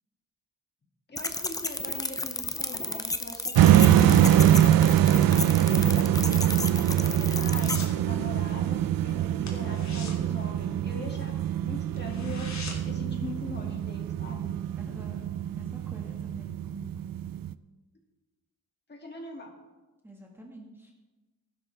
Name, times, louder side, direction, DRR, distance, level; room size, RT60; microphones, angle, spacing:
voice 1, 1.1-6.2 6.9-7.8 8.0-11.3 11.6-12.5 12.8-14.5 18.9-19.5, left 2 dB, 30° left, 0 dB, 2.3 m, -42 dB
sound 1, 1.2-7.9, left 2 dB, 10° left, 0.7 m, -33 dB
sound 2, 3.6-17.5, right 11 dB, 80° right, 0.5 m, -24 dB
sound 3, 7.3-8.0 8.3-8.6 8.9-9.0 9.4-11.3 11.6-11.7 11.9-13.1 13.4-13.5, left 3 dB, 55° left, 2.6 m, -43 dB
voice 2, 14.8-16.9 20.0-20.9, right 1 dB, 5° right, -1 dB, 1.7 m, -47 dB
15.5 x 12.0 x 3.4 m, 1.2 s
wide cardioid pair, 125°, 33 cm